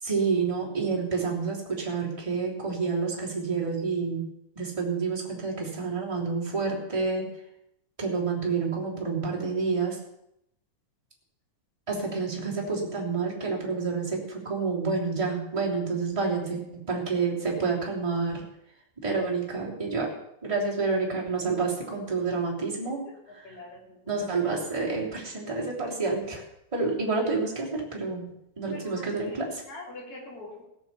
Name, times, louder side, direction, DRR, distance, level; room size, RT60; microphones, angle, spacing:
voice 1, 0.0-4.3 4.5-7.3 8.0-10.0 11.9-18.5 19.0-20.1 20.4-23.0 23.3-23.6 24.1-26.4 26.7-28.2 28.6-29.6, right 4 dB, 10° right, -4 dB, 3.1 m, -29 dB
voice 2, 23.4-24.4 28.7-29.4 29.7-30.7, left 2 dB, 50° left, -2 dB, 4.0 m, -44 dB
17.0 x 7.5 x 6.9 m, 0.79 s
omnidirectional pair, 3.4 m